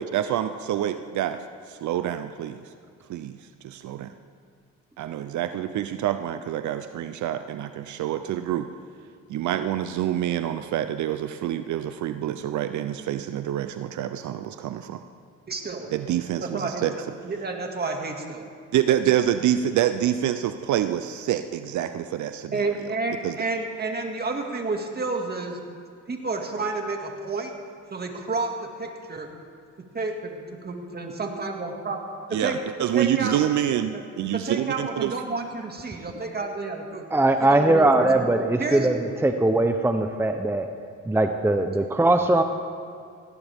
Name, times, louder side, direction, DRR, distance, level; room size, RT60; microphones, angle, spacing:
voice 1, 0.0-1.4 1.7-2.6 3.1-3.3 3.6-4.1 5.0-8.7 9.3-15.0 15.9-16.9 18.7-22.7 23.2-23.4 32.3-35.1, right 11 dB, 70° right, 10 dB, 0.6 m, -26 dB
voice 2, 15.5-15.9 16.4-16.9 17.2-18.5 22.5-25.6 26.1-27.5 27.9-29.3 29.9-32.0 32.3-32.6 32.9-33.4 33.9-34.0 34.3-37.1 37.5-38.2 38.6-38.9, right 3 dB, 30° right, 2 dB, 2.2 m, -30 dB
voice 3, 37.1-39.0 39.2-40.7 41.1-42.4, right 2 dB, 10° right, 6 dB, 0.7 m, -20 dB
18.5 x 16.0 x 3.6 m, 2.3 s
cardioid pair, 90°, 30 cm